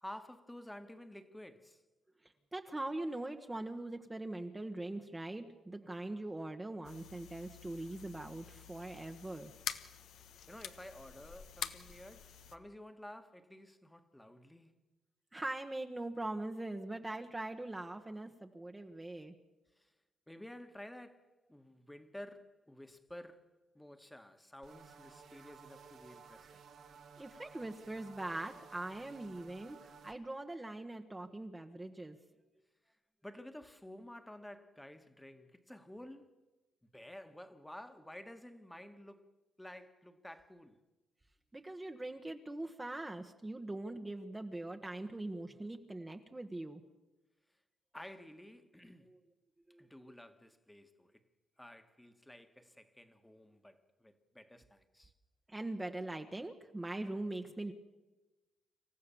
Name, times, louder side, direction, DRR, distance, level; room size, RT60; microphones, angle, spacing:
voice 1, 0.0-1.8 10.5-14.8 19.7-19.9 20.3-26.6 32.9-33.0 33.2-36.4 36.8-39.3 39.6-40.8 47.9-49.1 49.8-51.2 51.6-55.1, left 1 dB, 5° left, 1.6 m, -52 dB
voice 2, 2.2-9.5 15.3-19.3 27.2-32.2 41.5-46.8 49.1-49.2 49.7-49.8 55.5-57.7, right 2 dB, 15° right, 1.2 m, -42 dB
sound 1, 6.8-12.6, left 9 dB, 75° left, 1.1 m, -47 dB
sound 2, 24.6-30.2, right 6 dB, 70° right, 2.5 m, -56 dB
27.0 x 14.5 x 7.1 m
cardioid pair, 90°, 0 cm